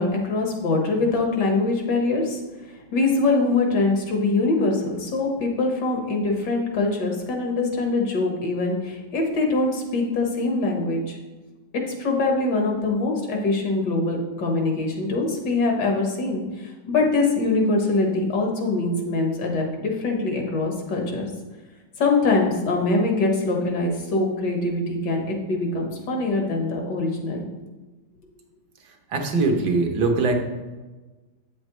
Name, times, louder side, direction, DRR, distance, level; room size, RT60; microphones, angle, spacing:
voice 1, 0.0-2.4 2.9-11.2 11.7-21.3 22.0-27.4, left 3 dB, 75° left, 1 dB, 2.0 m, -23 dB
voice 2, 29.1-30.3, right 3 dB, 70° right, 3 dB, 1.6 m, -21 dB
8.4 x 7.3 x 3.1 m, 1.2 s
omnidirectional pair, 1.9 m